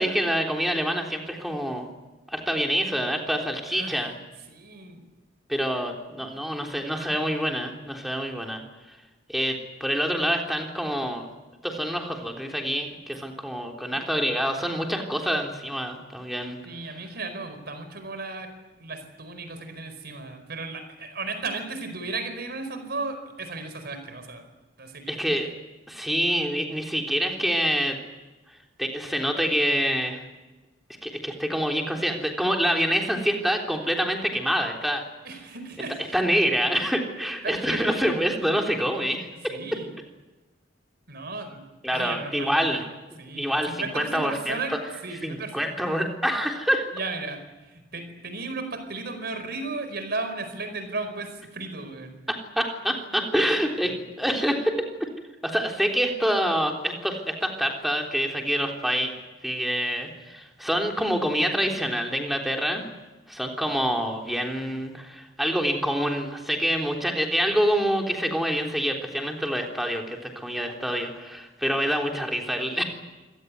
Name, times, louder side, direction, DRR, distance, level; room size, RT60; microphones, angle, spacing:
voice 1, 0.0-1.9 2.3-4.2 5.5-8.6 8.9-9.0 9.3-11.3 11.6-16.6 25.1-25.5 25.9-28.0 28.8-30.2 31.0-35.0 36.1-39.8 41.8-42.8 43.4-44.8 45.2-46.9 52.3-54.7 55.0-55.1 55.4-59.1 59.4-62.8 63.3-72.9, equal, ahead, 2 dB, 3.5 m, -26 dB
voice 2, 3.7-4.0 4.5-5.0 13.9-14.1 15.1-15.2 16.6-18.5 18.8-24.4 24.8-25.3 35.2-36.1 37.4-38.2 39.5-39.9 41.1-41.6 41.9-42.8 43.2-44.7 45.0-45.6 46.9-52.2 53.3-53.9, right 3 dB, 60° right, 8 dB, 4.8 m, -35 dB
26.0 x 17.5 x 9.8 m, 1.2 s
head